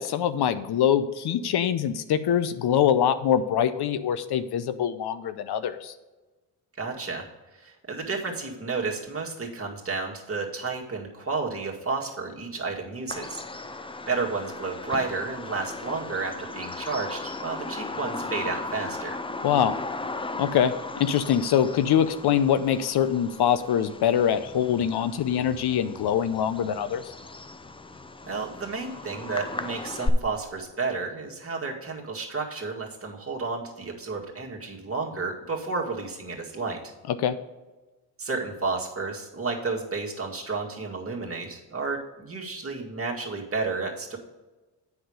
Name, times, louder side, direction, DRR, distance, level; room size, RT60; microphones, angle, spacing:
voice 1, 0.0-5.9 19.4-19.8 20.4-20.7 21.0-27.0 37.2-37.4, left 9 dB, 65° left, 12 dB, 0.7 m, -24 dB
voice 2, 6.8-7.3 7.5-13.4 14.0-19.2 28.3-36.9 38.2-44.2, right 4 dB, 30° right, 0 dB, 2.0 m, -31 dB
Bird vocalization bird call bird song, 13.1-30.1, left 2 dB, 15° left, 0.5 m, -37 dB
7.8 x 6.0 x 5.0 m, 1.2 s
cardioid pair, 70°, 42 cm